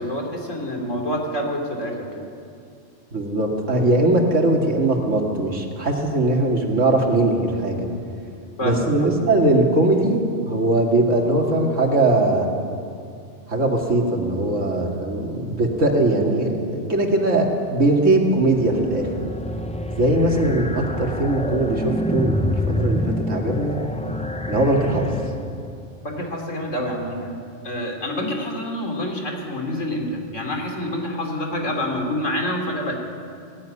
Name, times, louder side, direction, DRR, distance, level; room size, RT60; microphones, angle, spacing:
voice 1, 0.0-2.2 8.6-8.8 26.0-27.4 27.6-32.9, left 1 dB, 85° left, 2 dB, 3.5 m, -27 dB
voice 2, 3.1-7.9 8.6-12.5 13.5-19.1 20.0-23.8 24.5-25.1, right 2 dB, 80° right, 1 dB, 2.7 m, -20 dB
sound 1, 18.3-25.8, left 1 dB, 10° left, 0.5 m, -27 dB
17.0 x 15.5 x 9.8 m, 2.4 s
omnidirectional pair, 1.3 m